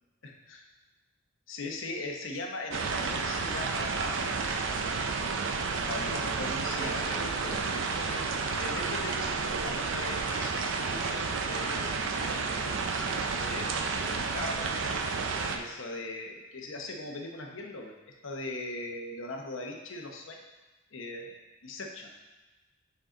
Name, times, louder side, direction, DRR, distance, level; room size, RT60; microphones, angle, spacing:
voice 1, 0.2-0.6 1.5-4.4 5.9-14.9 15.5-20.4 20.9-21.4 21.6-22.1, left 2 dB, 75° left, 1 dB, 0.8 m, -40 dB
sound 1, 2.7-15.6, right 4 dB, 65° right, 0.5 m, -31 dB
5.6 x 5.0 x 3.8 m, 1.2 s
head